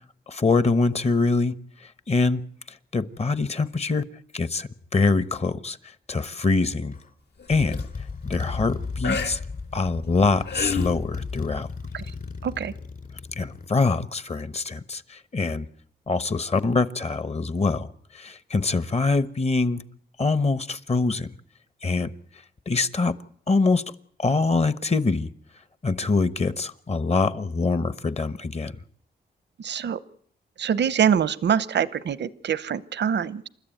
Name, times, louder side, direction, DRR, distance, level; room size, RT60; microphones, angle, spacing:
voice 1, 0.3-1.6 2.1-2.4 2.9-4.0 4.3-5.8 6.1-7.0 7.5-7.8 8.2-9.4 9.7-11.7 13.4-15.6 16.1-17.9 18.1-19.8 20.2-21.3 21.8-22.1 22.7-23.1 23.5-23.8 24.2-25.3 25.8-28.7, left 3 dB, 40° left, 1.1 m, -24 dB
Motorcycle, 6.9-7.1 7.5-13.7, left 4 dB, 55° left, 3.7 m, -35 dB
sound 1, 7.4-7.8 9.0-9.3 10.2-11.0 12.1-12.2, left 5 dB, 70° left, 1.8 m, -29 dB
voice 2, 12.4-12.7 29.6-30.0 30.6-33.5, right 8 dB, 85° right, 0.9 m, -24 dB
29.0 x 13.5 x 9.1 m
wide cardioid pair, 105°, 18 cm